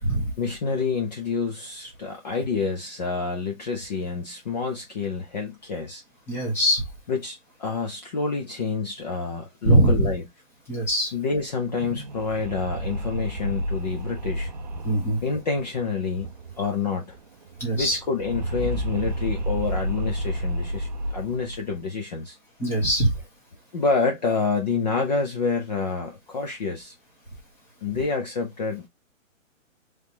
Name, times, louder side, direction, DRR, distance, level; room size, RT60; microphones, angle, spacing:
voice 1, 0.4-6.0 7.1-10.3 11.1-14.5 15.2-16.3 16.6-17.2 17.7-22.4 23.7-26.9 27.8-28.9, left 4 dB, 30° left, 0.8 m, -28 dB
voice 2, 6.3-6.8 9.7-10.1 10.7-11.1 14.8-15.2 17.6-18.0 22.6-23.1, right 1 dB, 5° left, 1.1 m, -21 dB
sound 1, 11.7-16.9 17.1-17.2 17.5-21.8, right 1 dB, 35° right, 0.5 m, -31 dB
3.6 x 3.3 x 2.8 m
hypercardioid pair, 160°, 40 cm